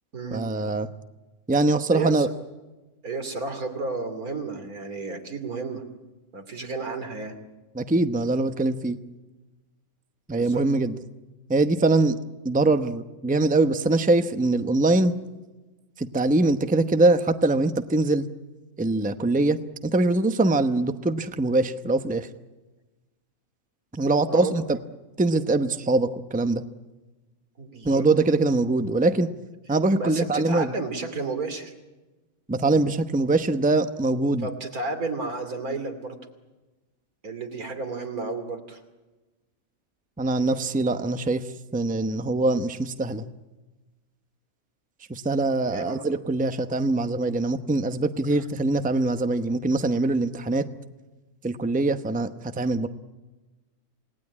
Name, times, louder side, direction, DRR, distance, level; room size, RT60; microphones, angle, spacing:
voice 1, 0.3-0.9 1.5-2.3 7.7-9.0 10.3-11.0 11.5-12.2 12.4-15.1 16.0-18.3 18.8-19.6 19.8-22.3 23.9-24.8 25.2-26.6 27.8-29.3 29.7-30.7 32.5-34.5 40.2-41.5 41.7-43.2 45.1-50.6 51.4-52.9, right 2 dB, 10° right, 9 dB, 0.7 m, -23 dB
voice 2, 1.9-2.3 3.0-5.8 6.3-7.3 10.3-10.6 24.3-24.6 27.6-28.1 30.0-31.7 34.4-36.2 37.2-38.8 45.7-46.0 48.3-48.4, right 3 dB, 90° right, 7 dB, 3.2 m, -32 dB
27.5 x 18.5 x 9.8 m, 1.2 s
omnidirectional pair, 1.5 m